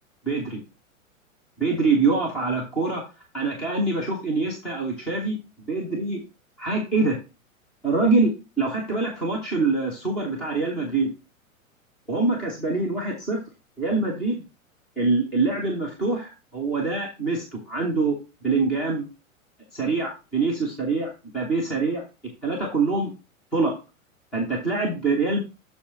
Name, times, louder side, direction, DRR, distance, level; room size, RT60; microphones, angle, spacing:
voice 1, 0.2-0.6 1.6-3.0 3.3-5.4 5.7-6.2 6.6-7.2 7.8-8.3 8.6-11.1 12.1-13.4 13.8-14.4 15.0-18.2 18.4-19.1 19.7-22.0 22.4-23.1 23.5-23.7 24.3-25.4, right 3 dB, ahead, -1 dB, 0.3 m, -24 dB
7.0 x 6.4 x 3.0 m, 0.28 s
figure-of-eight pair, 105°, 42 cm